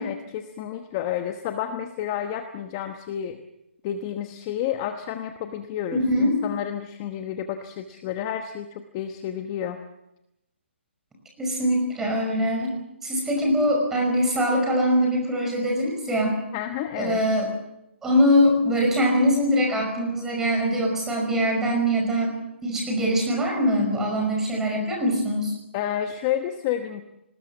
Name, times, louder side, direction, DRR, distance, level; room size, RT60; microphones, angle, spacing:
voice 1, 0.0-3.4 3.8-9.8 16.5-17.2 25.7-27.0, left 10 dB, 20° left, 7 dB, 1.1 m, -30 dB
voice 2, 5.9-6.3 11.4-12.8 13.0-16.4 17.0-17.5 18.0-22.3 22.6-25.5, equal, 5° right, 0 dB, 5.4 m, -22 dB
24.0 x 20.0 x 7.0 m, 0.86 s
hypercardioid pair, 165°, 7 cm